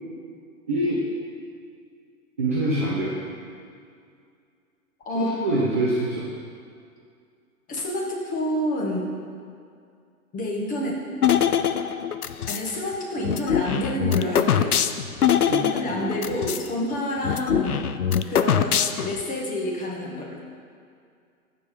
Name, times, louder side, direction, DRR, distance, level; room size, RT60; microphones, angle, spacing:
voice 1, 0.7-1.1 2.4-3.2 5.1-6.3 15.5-16.4 18.5-18.8, right 1 dB, 10° right, -6 dB, 0.3 m, -26 dB
voice 2, 5.0-5.4 7.7-9.1 10.3-11.0 12.4-14.8 15.5-17.8 18.3-20.4, left 1 dB, 20° left, -2 dB, 1.6 m, -28 dB
sound 1, 11.2-12.7 13.2-16.7 16.9-17.0 17.2-19.2, left 8 dB, 85° left, 0.6 m, -23 dB
14.0 x 5.0 x 5.3 m, 2.3 s
figure-of-eight pair, 115°, 44 cm